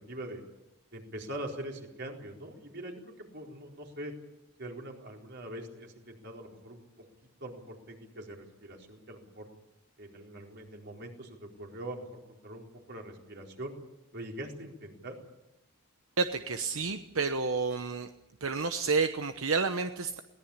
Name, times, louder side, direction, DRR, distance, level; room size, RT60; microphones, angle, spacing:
voice 1, 0.1-0.4 0.9-4.1 4.6-6.8 7.4-9.5 10.0-13.7 14.1-15.1, right 1 dB, 55° right, 1 dB, 4.3 m, -43 dB
voice 2, 16.2-18.1 18.4-20.2, right 4 dB, 80° right, 8 dB, 1.0 m, -30 dB
22.0 x 18.5 x 8.7 m, 0.89 s
head